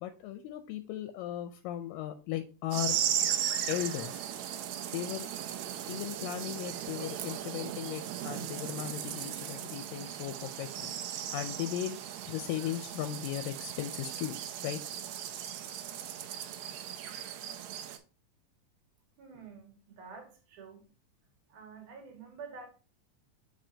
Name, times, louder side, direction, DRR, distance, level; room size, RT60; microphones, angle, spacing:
voice 1, 0.0-3.0 3.7-4.2 4.9-5.3 5.9-10.9 11.3-12.0 12.3-14.4 14.6-14.8, left 12 dB, 80° left, 8 dB, 2.1 m, -37 dB
sound 1, 2.7-18.0, right 10 dB, 85° right, 1.6 m, -37 dB
voice 2, 19.2-20.9 21.5-22.7, right 5 dB, 65° right, 2 dB, 2.5 m, -48 dB
7.6 x 4.8 x 2.7 m, 0.34 s
omnidirectional pair, 4.0 m